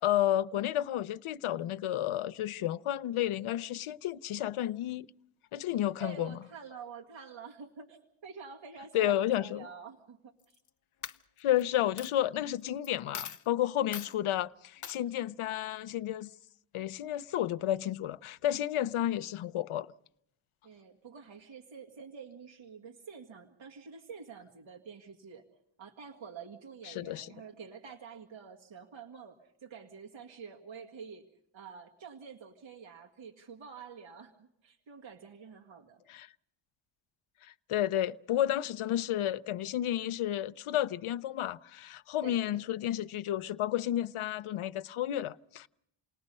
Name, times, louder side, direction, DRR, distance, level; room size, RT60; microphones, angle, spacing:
voice 1, 0.0-5.1 5.5-6.4 8.9-9.7 11.4-16.3 16.7-19.9 26.9-27.3 36.1-36.3 37.4-45.7, left 12 dB, 80° left, 0.7 m, -31 dB
voice 2, 6.0-10.6 20.6-25.5 25.8-31.2 31.5-36.0 42.2-42.6, right 6 dB, 65° right, 2.0 m, -48 dB
Coin (dropping), 10.4-10.7 11.0-11.6 12.0-12.1 12.8-12.9 13.1-13.4 13.9-14.1 14.8-15.0, left 8 dB, 40° left, 0.7 m, -41 dB
29.0 x 19.5 x 5.5 m
wide cardioid pair, 170°, 49 cm